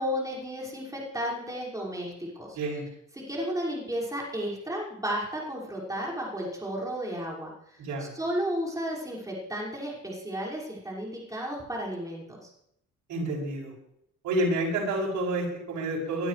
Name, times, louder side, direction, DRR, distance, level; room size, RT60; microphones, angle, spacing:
voice 1, 0.0-2.6 3.1-12.5, equal, 10° right, -4 dB, 5.8 m, -33 dB
voice 2, 7.8-8.1 13.1-13.7 14.2-16.3, right 1 dB, 85° right, -4 dB, 6.8 m, -29 dB
21.5 x 12.5 x 3.4 m, 0.76 s
cardioid pair, 90°, 30 cm